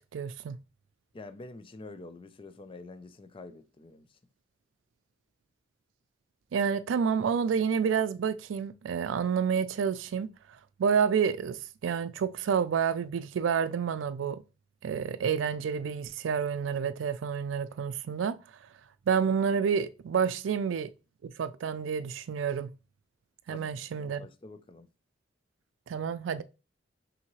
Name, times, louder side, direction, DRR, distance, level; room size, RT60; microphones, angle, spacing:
voice 1, 0.1-0.6 6.5-10.3 10.8-14.4 14.8-18.4 19.1-20.9 21.2-22.7 23.5-24.2 25.9-26.4, right 6 dB, 85° right, 0.3 m, -29 dB
voice 2, 1.1-4.2 23.5-23.7 24.0-24.9, left 3 dB, 30° left, 0.4 m, -47 dB
5.6 x 2.7 x 3.0 m
head